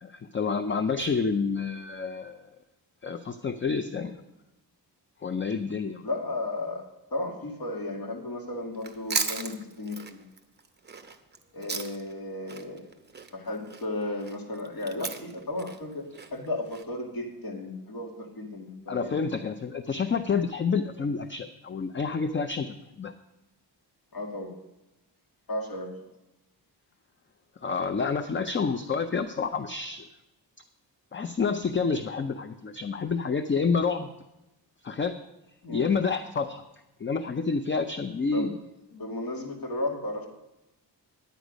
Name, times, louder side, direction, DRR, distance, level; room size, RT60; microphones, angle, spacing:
voice 1, 0.0-2.5 3.0-4.2 5.2-6.0 18.9-22.7 23.0-23.1 27.6-30.0 31.1-34.1 34.8-35.2 35.7-36.6 37.0-38.6, left 5 dB, 30° left, 9 dB, 0.5 m, -28 dB
voice 2, 6.0-10.2 11.5-12.8 13.3-16.0 16.3-19.3 24.1-24.5 25.5-26.1 35.6-35.9 38.3-38.5 38.9-40.3, left 2 dB, 55° left, 0 dB, 2.3 m, -34 dB
Chewing mastication, 8.7-12.2 12.5-16.8, right 4 dB, 25° right, 0.8 m, -36 dB
10.5 x 9.7 x 5.1 m, 0.95 s
wide cardioid pair, 140°, 43 cm